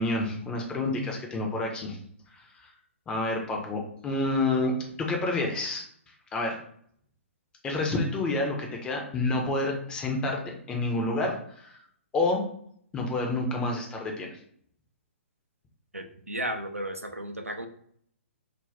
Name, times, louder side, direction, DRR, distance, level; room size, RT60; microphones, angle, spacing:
voice 1, 0.0-2.0 2.6-2.7 3.1-5.8 6.3-6.6 7.6-10.4 10.7-11.8 12.1-12.4 12.9-14.3, left 2 dB, 10° left, 1 dB, 0.5 m, -28 dB
voice 2, 15.9-17.7, right 1 dB, 90° right, 5 dB, 0.4 m, -34 dB
2.5 x 2.1 x 3.3 m, 0.63 s
figure-of-eight pair, 125°, 7 cm